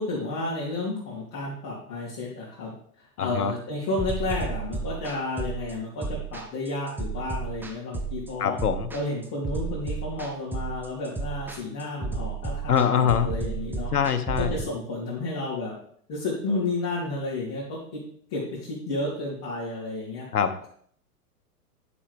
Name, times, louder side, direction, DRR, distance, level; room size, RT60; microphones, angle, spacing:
voice 1, 0.0-8.6 8.9-13.9 14.3-15.7 16.1-18.0 18.3-20.3, left 2 dB, 35° left, -7 dB, 2.7 m, -31 dB
voice 2, 3.2-3.5 8.4-8.9 12.7-13.3 13.9-14.5 20.3-20.7, left 8 dB, 75° left, 10 dB, 1.0 m, -23 dB
sound 1, 4.0-14.6, right 4 dB, 5° right, 0.5 m, -32 dB
9.9 x 6.1 x 3.5 m, 0.62 s
figure-of-eight pair, 100°, 46 cm